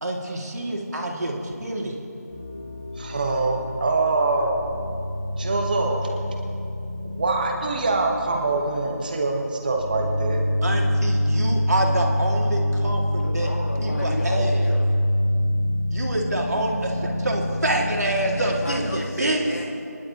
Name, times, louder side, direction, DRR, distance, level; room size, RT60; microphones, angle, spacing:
voice 1, 0.0-1.9 10.6-13.5 13.8-14.6 15.9-19.4, right 1 dB, 65° right, 0 dB, 2.4 m, -26 dB
sound 1, 2.3-19.0, equal, 30° left, 1.7 m, -26 dB
voice 2, 3.0-4.5 5.3-6.0 7.0-10.4, right 3 dB, 30° right, 2 dB, 1.3 m, -24 dB
voice 3, 13.2-14.9 18.1-19.6, left 1 dB, 80° left, -7 dB, 2.9 m, -34 dB
24.5 x 11.5 x 3.0 m, 2.6 s
figure-of-eight pair, 170°, 9 cm